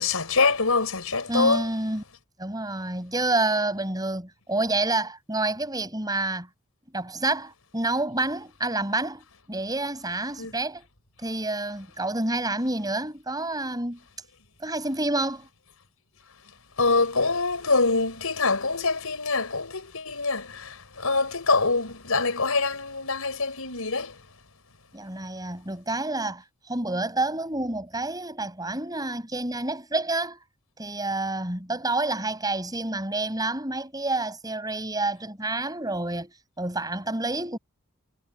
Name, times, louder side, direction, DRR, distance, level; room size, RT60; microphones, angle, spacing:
voice 1, 0.0-1.7 10.4-10.5 16.8-24.2, left 3 dB, 80° left, 4.9 m, -25 dB
voice 2, 1.3-2.0 2.4-6.5 6.9-10.8 11.2-14.0 14.6-15.5 24.9-30.4 30.8-37.6, right 2 dB, 20° right, 6.9 m, -28 dB
head